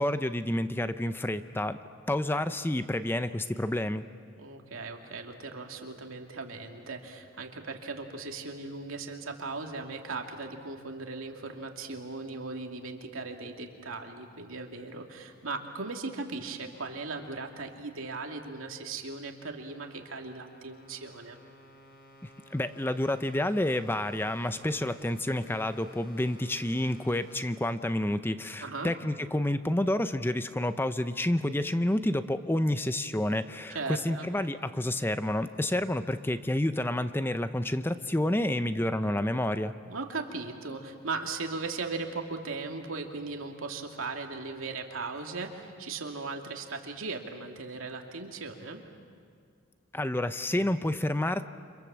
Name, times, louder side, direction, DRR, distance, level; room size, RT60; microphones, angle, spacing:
voice 1, 0.0-1.8 2.1-4.0 22.5-39.7 49.9-51.5, left 1 dB, 10° left, 11 dB, 0.6 m, -29 dB
voice 2, 4.4-21.4 28.6-28.9 33.7-34.3 39.9-48.8, right 3 dB, 85° right, 3 dB, 2.5 m, -38 dB
sound 1, 19.7-27.4, left 1 dB, 65° left, 5.0 m, -55 dB
28.5 x 26.5 x 7.5 m, 2.1 s
head